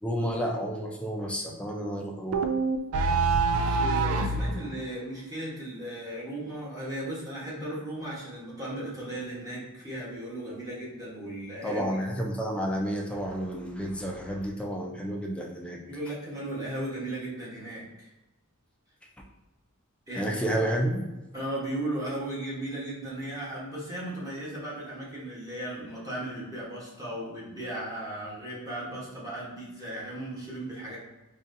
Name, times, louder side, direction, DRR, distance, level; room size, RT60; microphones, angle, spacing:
voice 1, 0.0-2.5 11.6-15.8 20.2-21.0, equal, 5° left, -1 dB, 0.4 m, -30 dB
sound 1, 2.3-4.5, right 4 dB, 65° right, 0.3 m, -25 dB
voice 2, 3.5-12.0 15.9-18.1 20.1-20.4 21.3-31.0, right 1 dB, 15° right, -7 dB, 1.1 m, -36 dB
4.0 x 2.4 x 2.6 m, 1.0 s
head